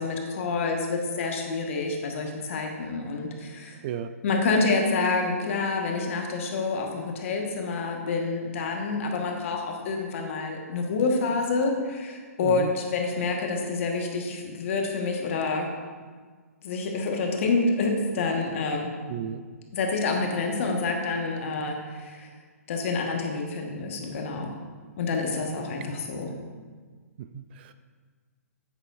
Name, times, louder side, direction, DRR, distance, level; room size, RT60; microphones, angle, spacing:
voice 1, 0.0-3.8 4.2-15.7 16.6-18.9 19.7-22.3 22.7-24.5 25.0-26.3, left 3 dB, 55° left, 2 dB, 1.4 m, -28 dB
voice 2, 12.4-12.7 19.1-19.4 27.2-27.7, right 9 dB, 40° right, 10 dB, 0.4 m, -33 dB
9.0 x 8.9 x 2.6 m, 1.5 s
hypercardioid pair, 130°, 8 cm